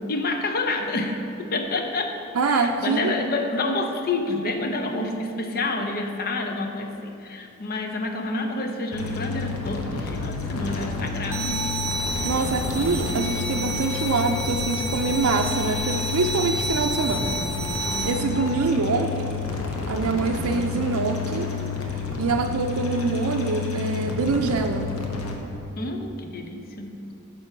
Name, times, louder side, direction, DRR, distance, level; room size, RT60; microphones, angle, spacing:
voice 1, 0.1-2.2 2.4-11.7 25.8-27.0, left 2 dB, 45° left, 4 dB, 0.6 m, -28 dB
voice 2, 2.3-3.1 12.2-17.4 18.0-19.5 19.9-21.5 22.2-24.9, right 4 dB, 75° right, 3 dB, 0.4 m, -25 dB
sound 1, 8.9-25.3, left 5 dB, 75° left, 0.9 m, -30 dB
sound 2, 11.3-18.1, right 1 dB, 15° right, 1.7 m, -30 dB
8.9 x 3.8 x 5.9 m, 2.8 s
head